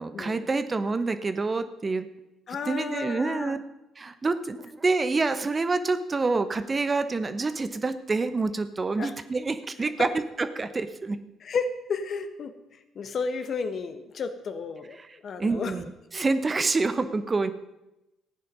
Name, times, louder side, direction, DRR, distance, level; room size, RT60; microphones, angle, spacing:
voice 1, 0.0-2.1 2.6-3.6 4.0-10.1 10.4-11.2 15.0-15.1 15.4-17.5, right 3 dB, 30° right, 11 dB, 1.0 m, -27 dB
voice 2, 2.5-3.6 9.0-9.1 11.4-12.5 12.9-15.0 15.2-15.8, left 5 dB, 50° left, 9 dB, 1.2 m, -32 dB
15.0 x 9.5 x 5.5 m, 0.93 s
figure-of-eight pair, 45°, 0 cm